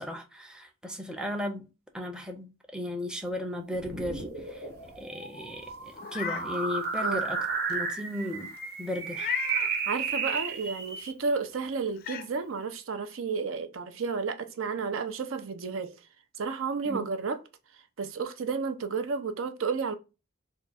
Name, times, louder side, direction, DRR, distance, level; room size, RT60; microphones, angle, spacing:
voice 1, 0.0-1.7 1.9-4.7 5.0-8.5 8.8-9.3 16.9-17.1, left 1 dB, 5° right, 0.5 m, -36 dB
sound 1, 3.7-11.1, right 5 dB, 50° right, 0.9 m, -33 dB
Meow, 5.9-6.5 7.0-7.1 9.1-9.7 11.3-11.4 12.0-12.3, left 7 dB, 45° left, 0.4 m, -34 dB
voice 2, 9.9-15.9 16.4-17.4 18.0-19.9, right 5 dB, 70° right, 0.5 m, -32 dB
3.5 x 2.2 x 4.1 m
head